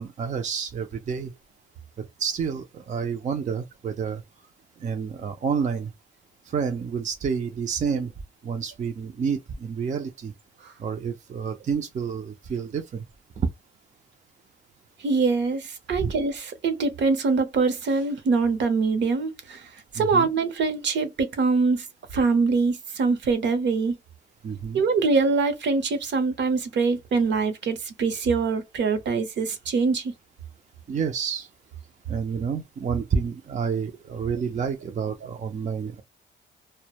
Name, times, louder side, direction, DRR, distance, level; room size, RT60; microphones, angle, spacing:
voice 1, 0.0-1.3 2.0-4.2 4.8-5.9 6.4-8.1 8.4-10.3 10.8-13.0 13.4-13.5 15.9-16.1 19.9-20.3 24.4-24.8 30.9-31.5 32.1-36.0, right 6 dB, 35° right, 0.5 m, -29 dB
voice 2, 15.0-15.6 15.9-19.6 20.0-21.8 22.1-23.9 24.7-30.0, right 4 dB, 65° right, 0.8 m, -23 dB
2.1 x 2.0 x 2.9 m
cardioid pair, 90°, 20 cm